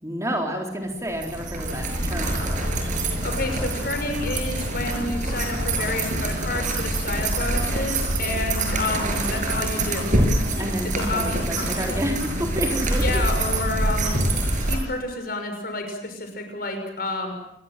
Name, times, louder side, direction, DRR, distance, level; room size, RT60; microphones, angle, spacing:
voice 1, 0.0-2.7 10.6-13.2 14.6-14.7, equal, 15° right, 2 dB, 4.1 m, -30 dB
sound 1, 1.1-14.8, right 1 dB, 45° right, 6.5 m, -25 dB
voice 2, 3.2-10.1 10.9-12.0 13.0-14.2 14.6-17.3, left 2 dB, 55° left, 5 dB, 6.2 m, -30 dB
27.5 x 21.5 x 7.7 m, 0.76 s
head